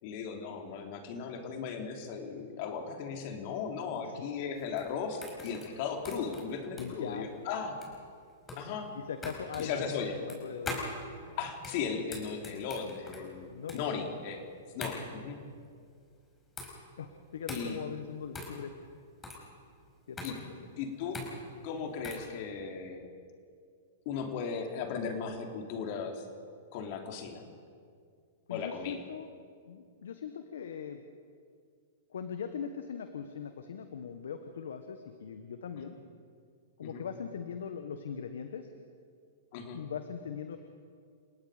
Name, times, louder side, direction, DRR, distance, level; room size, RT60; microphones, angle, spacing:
voice 1, 0.0-7.8 8.6-8.9 9.6-10.2 11.4-14.4 14.7-15.4 17.5-17.8 20.2-20.5 20.8-21.2 21.6-23.1 24.0-26.2 26.7-27.4 28.5-29.0 36.8-37.0 39.5-39.8, left 6 dB, 50° left, 3 dB, 3.3 m, -37 dB
sound 1, 4.5-22.3, left 2 dB, 15° left, 5.1 m, -44 dB
voice 2, 6.8-7.3 8.9-10.8 13.5-13.8 17.0-18.7 20.1-20.2 28.5-29.3 29.7-31.0 32.1-36.0 36.8-38.7 39.7-40.6, left 7 dB, 75° left, 8 dB, 1.3 m, -40 dB
29.5 x 18.0 x 5.1 m, 2.2 s
hypercardioid pair, 120°, 0 cm